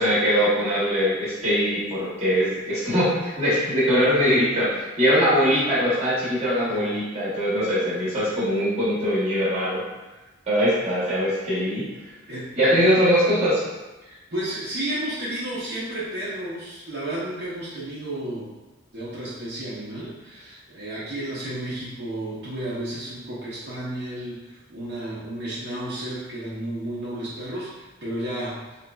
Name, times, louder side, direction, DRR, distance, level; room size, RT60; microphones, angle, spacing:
voice 1, 0.0-9.8 10.5-11.9 12.6-13.6, equal, 30° right, -9 dB, 1.0 m, -22 dB
voice 2, 14.0-18.5 18.9-28.6, right 1 dB, 55° right, -9 dB, 0.8 m, -32 dB
3.9 x 2.9 x 2.3 m, 1.1 s
head